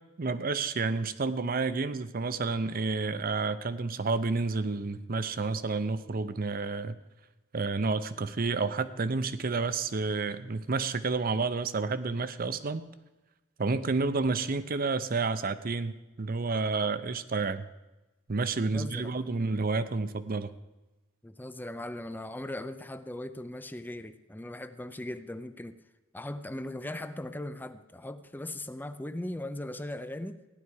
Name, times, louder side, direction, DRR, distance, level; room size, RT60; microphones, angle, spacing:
voice 1, 0.2-7.0 7.5-12.8 13.6-17.6 18.3-20.5, right 4 dB, 45° right, 13 dB, 0.7 m, -30 dB
voice 2, 18.7-19.2 21.2-25.8 26.1-30.4, left 1 dB, 10° left, 11 dB, 0.5 m, -39 dB
15.5 x 11.0 x 4.8 m, 1.1 s
head